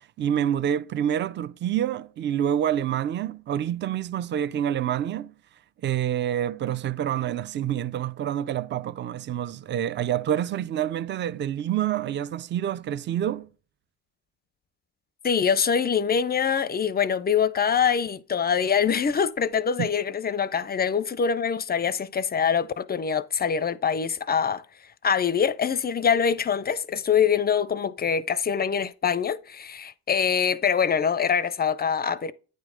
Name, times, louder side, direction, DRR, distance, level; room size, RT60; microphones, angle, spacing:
voice 1, 0.2-5.3 5.8-13.5 19.8-19.9, right 10 dB, 35° right, 0.4 m, -27 dB
voice 2, 15.2-24.6 25.0-32.3, left 7 dB, 30° left, 0.4 m, -24 dB
9.1 x 3.2 x 4.9 m
supercardioid pair, 75°, 34 cm